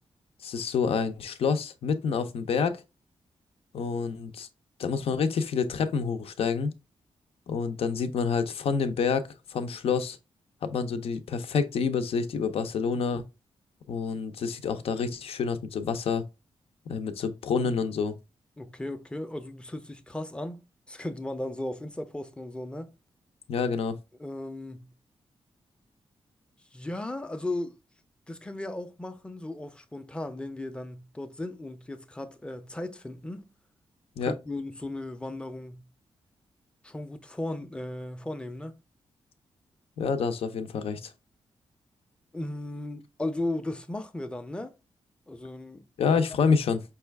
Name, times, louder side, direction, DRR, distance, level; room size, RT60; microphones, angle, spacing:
voice 1, 0.4-2.8 3.7-4.5 4.8-6.7 7.5-10.2 10.6-13.2 13.9-16.2 16.9-18.2 23.5-24.0 34.2-34.3 40.0-41.1 46.0-46.8, left 5 dB, 75° left, 0.6 m, -28 dB
voice 2, 18.6-20.6 20.9-22.9 24.2-24.9 26.7-27.8 28.3-33.5 34.2-35.9 36.8-38.7 42.3-44.7 45.3-46.2, left 1 dB, 10° left, 0.5 m, -36 dB
5.4 x 2.3 x 3.4 m
wide cardioid pair, 130°, 10 cm